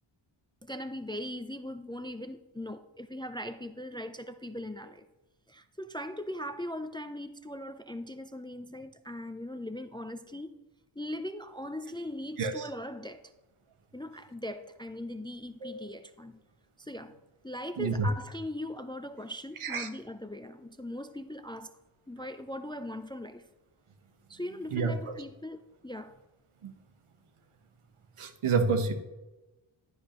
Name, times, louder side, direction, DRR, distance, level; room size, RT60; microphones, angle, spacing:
voice 1, 0.6-5.1 5.5-10.5 11.0-13.2 13.9-16.4 16.8-17.1 17.4-21.7 22.1-23.4 24.3-26.2, left 1 dB, 10° left, 10 dB, 0.3 m, -40 dB
voice 2, 17.8-18.1 19.6-19.9 24.7-25.1 26.6-26.7 28.2-28.9, right 4 dB, 80° right, 8 dB, 1.1 m, -29 dB
11.0 x 10.0 x 3.0 m, 1.1 s
wide cardioid pair, 100°, 50 cm